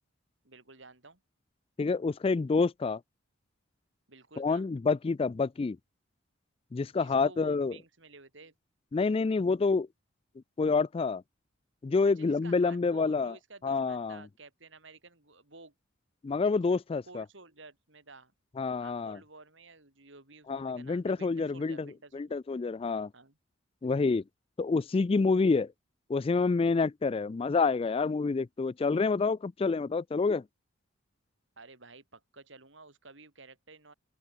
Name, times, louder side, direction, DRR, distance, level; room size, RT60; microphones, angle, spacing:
voice 1, 0.4-1.2 4.1-4.7 6.9-8.5 12.1-15.7 17.1-18.3 18.8-22.4 23.1-23.4 31.6-33.9, right 3 dB, 65° right, 4.3 m, -53 dB
voice 2, 1.8-3.0 4.4-5.8 6.7-7.7 8.9-9.9 10.6-11.2 11.8-13.3 13.6-14.2 16.2-17.2 18.6-19.2 20.5-21.9 22.1-23.1 23.8-24.2 24.6-25.7 26.1-30.4, left 4 dB, 30° left, 0.3 m, -28 dB
open air
head